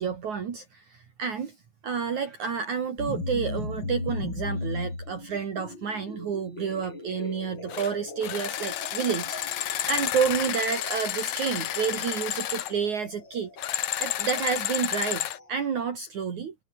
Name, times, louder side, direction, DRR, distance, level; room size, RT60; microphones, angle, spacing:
voice 1, 0.0-1.6 1.8-13.5 14.0-16.5, right 6 dB, 55° right, 4.0 m, -30 dB
sound 1, 3.0-15.7, left 2 dB, 30° left, 7.6 m, -38 dB
sound 2, 7.7-7.9 8.2-12.7 13.6-15.4, left 12 dB, 60° left, 2.2 m, -31 dB
omnidirectional pair, 4.2 m